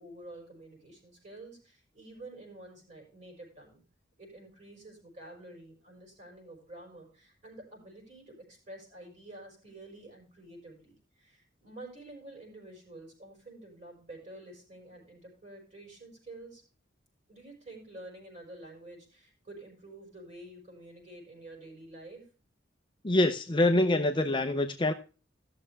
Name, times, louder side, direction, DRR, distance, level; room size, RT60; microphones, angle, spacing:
voice 1, 0.0-3.8 4.2-16.6 17.3-22.2, right 1 dB, 35° right, 0 dB, 5.4 m, -49 dB
voice 2, 23.0-24.9, left 1 dB, 25° left, 6 dB, 0.6 m, -25 dB
15.0 x 6.7 x 3.4 m, 0.35 s
head